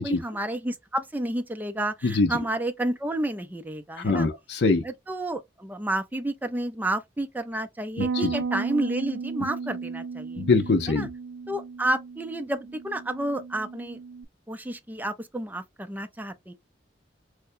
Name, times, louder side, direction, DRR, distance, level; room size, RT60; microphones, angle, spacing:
voice 1, 0.0-4.3 4.8-10.4 10.9-11.1 11.5-14.0 14.5-16.5, right 1 dB, 10° right, 0.5 m, -30 dB
voice 2, 4.0-4.8 8.2-8.3 10.4-11.1, left 3 dB, 65° left, 0.6 m, -22 dB
Bass guitar, 8.0-14.2, right 5 dB, 85° right, 0.4 m, -34 dB
4.7 x 2.2 x 2.6 m
head